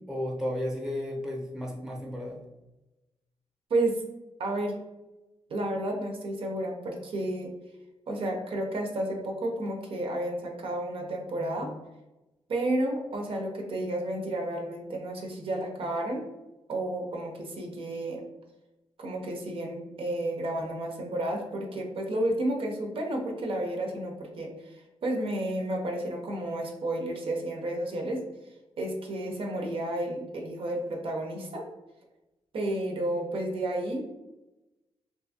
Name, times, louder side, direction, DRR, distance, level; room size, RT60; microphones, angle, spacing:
voice 1, 0.1-2.4, left 1 dB, 5° right, 0 dB, 0.7 m, -33 dB
voice 2, 3.7-4.0 4.4-4.8 5.5-7.5 8.1-11.7 12.5-16.2 16.7-18.2 19.0-28.2 28.8-31.6 32.5-34.1, right 1 dB, 65° right, 1 dB, 0.5 m, -31 dB
2.6 x 2.3 x 2.6 m, 1.0 s
cardioid pair, 95°, 10 cm